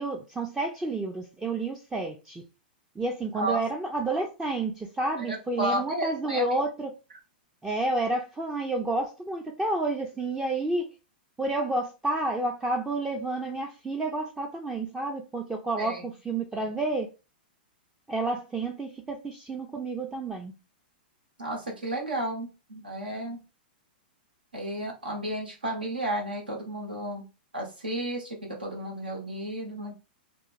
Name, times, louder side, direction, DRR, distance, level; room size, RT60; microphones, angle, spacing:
voice 1, 0.0-2.4 3.0-6.9 7.6-10.9 11.4-17.1 18.1-20.5, right 2 dB, 10° right, 0.4 m, -30 dB
voice 2, 5.2-6.4 15.8-16.1 21.4-23.4 24.5-27.2 27.5-29.9, right 1 dB, 90° right, 1.0 m, -32 dB
3.0 x 2.2 x 2.4 m
hypercardioid pair, 110°, 5 cm